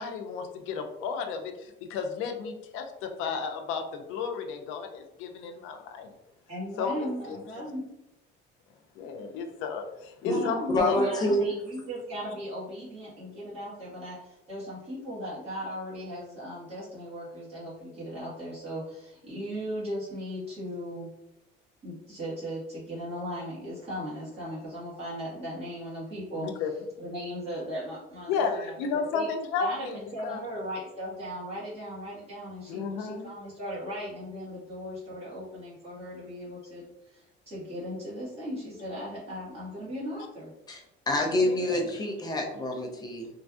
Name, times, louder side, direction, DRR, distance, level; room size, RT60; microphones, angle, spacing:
voice 1, 0.0-6.1 6.8-7.7 9.0-11.0 26.4-26.7 28.3-30.4 32.7-33.3 41.2-41.9, left 5 dB, 80° left, 5 dB, 0.5 m, -33 dB
voice 2, 6.5-7.9 10.3-21.1 21.8-26.5 27.0-29.3 29.6-40.5, equal, 30° right, -8 dB, 1.5 m, -37 dB
voice 3, 10.7-11.5 40.7-43.3, left 1 dB, 20° left, 1 dB, 0.4 m, -27 dB
3.1 x 2.5 x 2.4 m, 0.90 s
cardioid pair, 155°, 20 cm